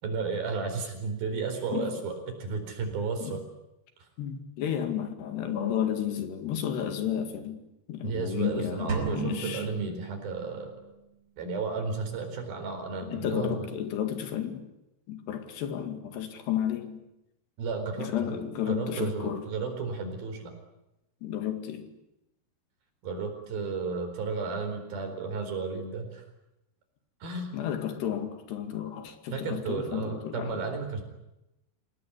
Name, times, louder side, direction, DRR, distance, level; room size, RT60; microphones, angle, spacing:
voice 1, 0.0-2.1 2.4-3.4 4.0-4.1 8.0-10.7 11.4-13.7 17.6-20.5 23.0-26.2 27.2-27.6 29.3-31.1, right 4 dB, 60° right, 6.1 m, -33 dB
voice 2, 4.2-7.6 7.9-9.7 13.1-14.7 15.1-17.0 18.0-19.5 21.2-21.9 27.5-30.6, left 9 dB, 75° left, 4.2 m, -32 dB
sound 1, 8.9-10.9, right 4 dB, 30° right, 6.8 m, -35 dB
27.5 x 18.5 x 9.9 m
omnidirectional pair, 4.9 m